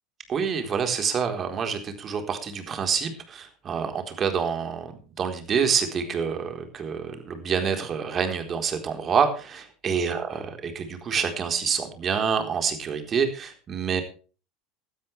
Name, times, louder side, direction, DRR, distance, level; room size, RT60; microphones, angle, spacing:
voice 1, 0.3-14.0, right 6 dB, 35° right, 6 dB, 4.1 m, -27 dB
17.0 x 13.0 x 3.4 m, 0.37 s
hypercardioid pair, 85°, 0 cm